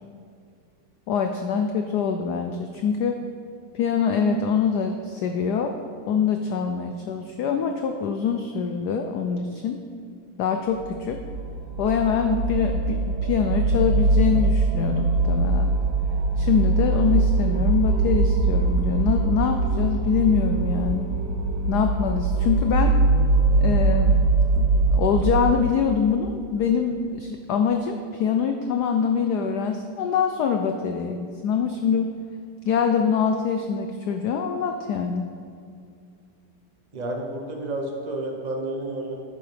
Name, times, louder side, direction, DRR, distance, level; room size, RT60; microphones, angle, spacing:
voice 1, 1.1-3.2 3.7-5.8 6.1-9.8 10.4-11.2 11.8-15.7 16.4-21.1 21.7-22.9 23.6-24.2 24.6-24.7 24.9-32.1 32.6-35.3, left 6 dB, 85° left, 5 dB, 0.8 m, -24 dB
sound 1, 10.8-25.6, right 3 dB, 65° right, 1.7 m, -22 dB
voice 2, 36.9-39.1, right 2 dB, 40° right, 1 dB, 0.6 m, -30 dB
11.0 x 8.8 x 3.4 m, 2.3 s
omnidirectional pair, 2.4 m